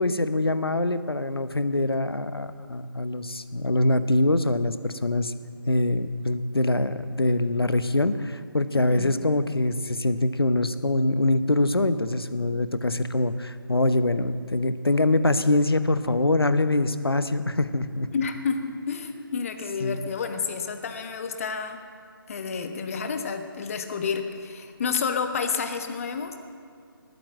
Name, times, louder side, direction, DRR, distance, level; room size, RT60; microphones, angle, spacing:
voice 1, 0.0-5.3 5.7-18.1 19.8-20.0, left 2 dB, 90° left, 12 dB, 1.0 m, -24 dB
voice 2, 8.9-9.2 18.1-21.8 22.3-26.4, left 5 dB, 35° left, 7 dB, 1.3 m, -30 dB
20.0 x 9.4 x 7.5 m, 2.2 s
figure-of-eight pair, 150°, 12 cm